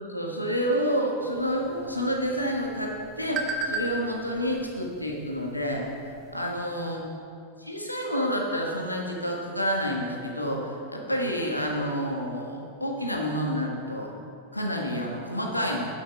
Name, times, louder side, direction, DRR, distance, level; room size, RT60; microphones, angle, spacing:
voice 1, 0.0-5.9 6.3-7.0 7.6-14.1 14.5-15.9, equal, 85° left, 0 dB, 1.4 m, -29 dB
sound 1, 1.3-6.4, right 2 dB, 30° right, 1.1 m, -37 dB
8.4 x 7.7 x 5.7 m, 2.6 s
figure-of-eight pair, 90°, 0 cm